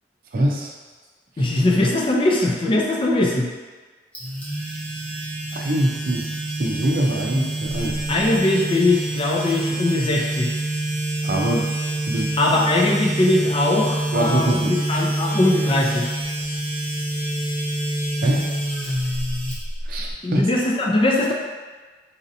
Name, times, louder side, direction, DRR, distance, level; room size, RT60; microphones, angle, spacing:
voice 1, 0.3-0.7 5.5-6.3 6.6-8.0 11.2-11.7 12.1-12.4 14.1-14.7 18.2-18.5 18.8-18.9 19.9-20.4, right 1 dB, 55° right, 0 dB, 0.5 m, -23 dB
voice 2, 1.4-3.5 8.1-10.6 12.4-16.1 20.2-21.3, left 2 dB, 30° left, -1 dB, 0.4 m, -20 dB
sound 1, 4.1-20.1, right 1 dB, 5° left, 0.7 m, -26 dB
4.1 x 2.7 x 2.6 m, 1.4 s
head